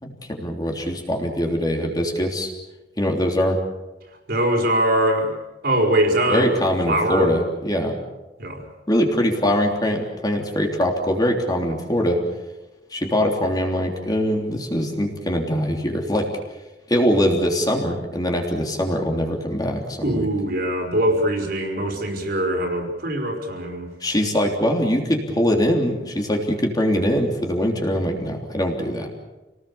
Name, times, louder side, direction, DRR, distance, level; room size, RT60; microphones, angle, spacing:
voice 1, 0.0-2.5 3.0-3.6 6.3-7.9 8.9-12.2 12.9-16.3 16.9-20.3 24.0-29.1, equal, 20° left, 1 dB, 3.3 m, -22 dB
voice 2, 4.1-5.4 5.6-6.5 6.8-7.3 8.4-8.6 20.0-23.9, right 1 dB, 55° right, 3 dB, 4.8 m, -22 dB
28.0 x 19.0 x 7.1 m, 1.1 s
head